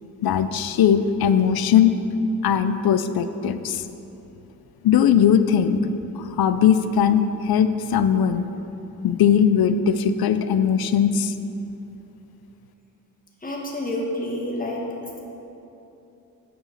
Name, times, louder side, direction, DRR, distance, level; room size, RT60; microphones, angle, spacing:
voice 1, 0.2-2.0 2.4-3.8 4.8-5.9 6.2-8.5 9.0-11.3, left 8 dB, 85° left, 11 dB, 0.5 m, -19 dB
voice 2, 13.4-14.8, left 1 dB, 25° left, -2 dB, 1.4 m, -28 dB
9.0 x 4.8 x 6.5 m, 3.0 s
wide cardioid pair, 100°, 36 cm